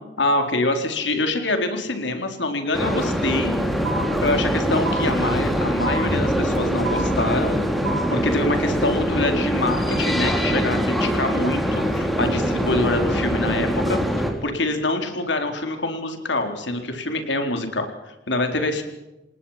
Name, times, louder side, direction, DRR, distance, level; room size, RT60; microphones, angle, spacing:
voice 1, 0.2-3.5 4.2-7.6 8.1-14.0 14.4-18.8, left 2 dB, 70° left, 5 dB, 4.2 m, -25 dB
sound 1, 2.7-14.3, equal, ahead, 4.1 m, -23 dB
sound 2, 3.8-4.5 4.8-5.5 5.8-6.5 6.8-7.5 7.8-8.5, right 4 dB, 90° right, 3.9 m, -32 dB
29.0 x 19.5 x 5.9 m, 0.98 s
head